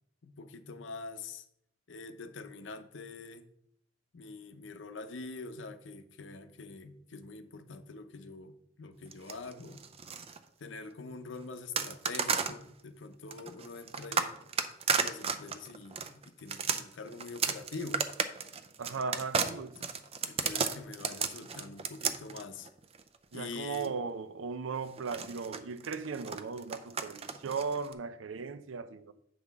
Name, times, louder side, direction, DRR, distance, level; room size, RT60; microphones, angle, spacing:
voice 1, 0.2-1.4 1.9-3.5 4.1-9.8 10.6-14.4 15.0-18.0 19.4-19.9 20.2-22.7 23.3-24.0, left 3 dB, 70° left, 0.6 m, -45 dB
sound 1, 9.1-10.4 11.8-12.6 13.3-23.9 25.0-27.9, right 6 dB, 30° right, 0.5 m, -34 dB
voice 2, 18.8-19.8 23.3-29.1, right 5 dB, 85° right, 0.5 m, -37 dB
7.9 x 5.6 x 3.5 m
head